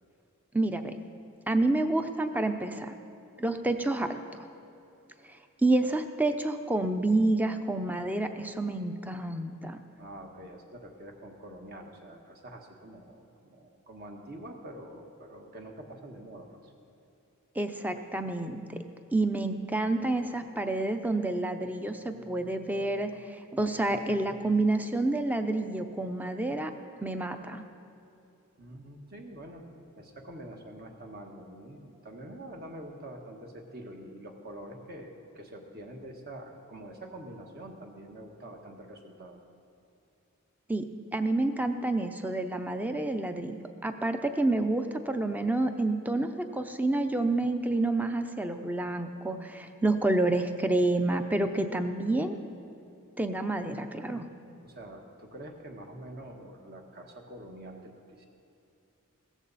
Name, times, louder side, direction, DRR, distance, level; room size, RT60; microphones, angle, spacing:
voice 1, 0.5-1.0 1.5-2.9 3.4-4.2 5.6-9.8 17.6-18.8 19.1-23.1 23.5-26.7 27.0-27.6 40.7-43.6 43.8-52.4 53.2-54.3, right 2 dB, 10° right, 7 dB, 0.6 m, -28 dB
voice 2, 10.0-16.7 28.6-29.7 30.0-39.4 54.6-58.3, right 1 dB, 45° right, 2 dB, 1.5 m, -46 dB
16.5 x 14.5 x 4.1 m, 2.8 s
head